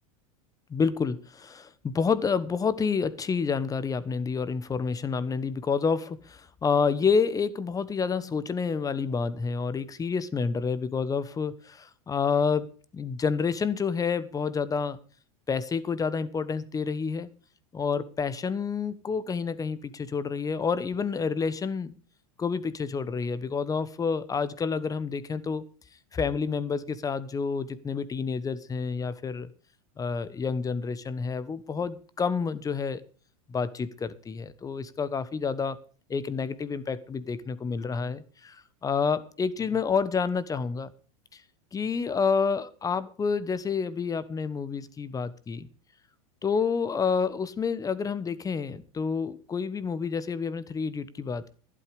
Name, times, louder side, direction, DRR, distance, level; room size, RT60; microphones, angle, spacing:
voice 1, 0.7-12.6 12.9-15.0 15.5-17.3 17.7-21.9 22.4-25.6 26.1-29.5 30.0-33.0 33.5-35.8 36.1-40.9 41.3-41.4 41.7-45.7 46.4-51.5, left 5 dB, 20° left, 16 dB, 1.1 m, -29 dB
12.5 x 11.0 x 5.1 m, 0.39 s
hypercardioid pair, 115°, 18 cm